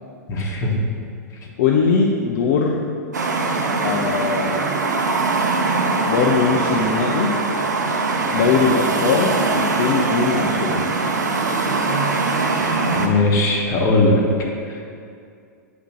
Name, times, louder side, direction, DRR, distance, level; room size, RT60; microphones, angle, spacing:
voice 1, 0.3-0.7 13.0-14.3, left 2 dB, 35° left, -2 dB, 1.4 m, -18 dB
voice 2, 1.6-2.9 3.7-4.6 6.1-7.3 8.3-10.9, left 5 dB, 55° left, 0 dB, 0.6 m, -20 dB
sound 1, 3.1-13.1, right 3 dB, 75° right, 0.7 m, -21 dB
8.0 x 2.9 x 6.0 m, 2.4 s
figure-of-eight pair, 95°, 9 cm